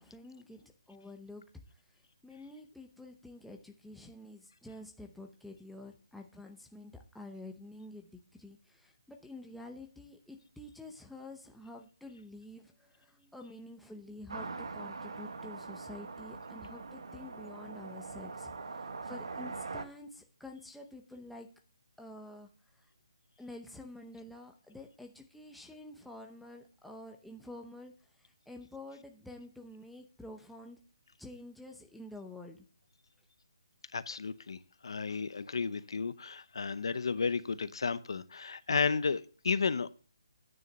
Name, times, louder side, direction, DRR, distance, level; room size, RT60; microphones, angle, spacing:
voice 1, 0.0-1.4 2.2-21.5 22.0-22.5 23.4-27.9 28.2-30.8 31.2-32.6, left 1 dB, ahead, 0.7 m, -49 dB
sound 1, 14.3-19.8, right 4 dB, 70° right, 1.1 m, -42 dB
voice 2, 33.9-39.9, left 5 dB, 65° left, 0.7 m, -33 dB
9.4 x 6.4 x 5.3 m
hypercardioid pair, 165°, 3 cm